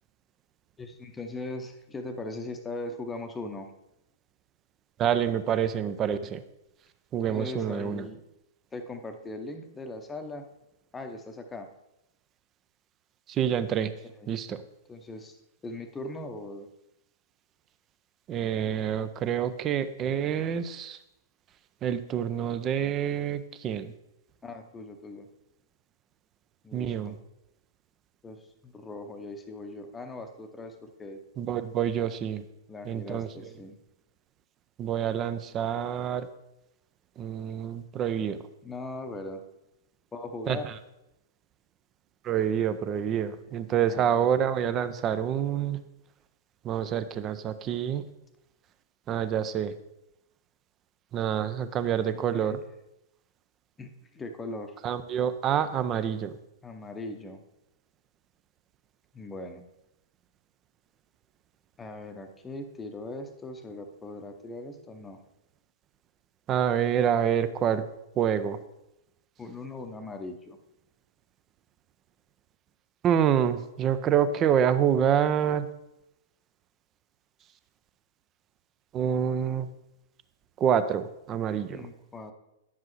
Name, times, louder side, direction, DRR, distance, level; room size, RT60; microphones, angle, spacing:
voice 1, 0.8-3.7 7.2-8.2 8.7-10.5 10.9-11.7 14.0-14.3 14.9-16.7 24.4-25.3 26.6-27.2 28.2-31.2 32.7-33.8 38.6-39.4 40.1-40.7 43.8-44.3 52.1-52.7 53.8-54.7 56.6-57.4 59.1-59.6 61.8-65.2 69.4-70.6 81.7-82.3, left 2 dB, 15° left, 6 dB, 0.8 m, -40 dB
voice 2, 5.0-6.4 7.1-8.1 13.3-13.9 14.3-14.6 18.3-21.0 21.8-23.9 26.7-27.1 31.4-32.5 32.9-33.3 34.8-36.3 37.2-38.4 40.5-40.6 42.2-45.8 46.6-48.0 49.1-49.7 51.1-52.6 54.8-56.3 66.5-67.8 68.2-68.6 73.0-75.7 78.9-79.7 80.6-81.9, right 9 dB, 30° right, 12 dB, 0.5 m, -27 dB
10.0 x 7.5 x 3.1 m, 0.90 s
figure-of-eight pair, 105°, 0 cm